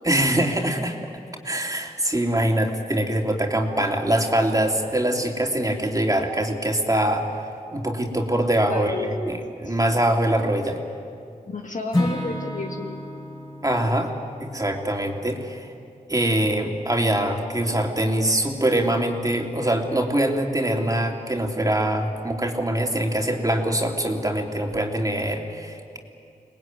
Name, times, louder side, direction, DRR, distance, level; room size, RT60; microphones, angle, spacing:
voice 1, 0.0-1.0 1.4-7.3 7.7-10.8 13.6-14.1 14.4-15.7 16.1-26.0, right 1 dB, 25° right, 1 dB, 3.1 m, -23 dB
voice 2, 8.7-9.2 9.7-9.8 11.5-13.0, left 3 dB, 55° left, 3 dB, 2.0 m, -31 dB
Acoustic guitar / Strum, 11.9-16.0, left 1 dB, 25° left, 4.8 m, -31 dB
24.5 x 19.5 x 9.3 m, 2.3 s
cardioid pair, 50°, 15 cm